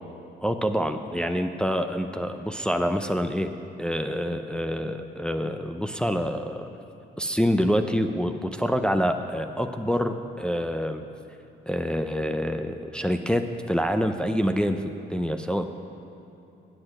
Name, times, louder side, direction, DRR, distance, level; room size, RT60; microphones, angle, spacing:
voice 1, 0.4-3.5 3.8-6.7 7.2-11.0 11.7-13.4 13.7-15.6, equal, 5° left, 6 dB, 0.5 m, -26 dB
8.6 x 8.0 x 6.4 m, 2.8 s
cardioid pair, 90°, 20 cm